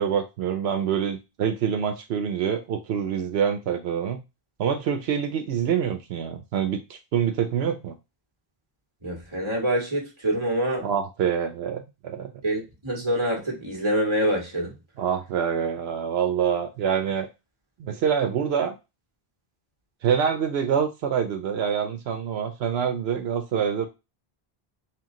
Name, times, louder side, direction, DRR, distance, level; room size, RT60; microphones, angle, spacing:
voice 1, 0.0-4.2 4.6-7.9 10.8-12.3 15.0-17.3 17.8-18.7 20.0-23.9, right 8 dB, 80° right, 0.8 m, -26 dB
voice 2, 9.0-10.9 12.4-14.8, equal, 30° right, 1.5 m, -26 dB
4.5 x 2.3 x 3.6 m
omnidirectional pair, 1.0 m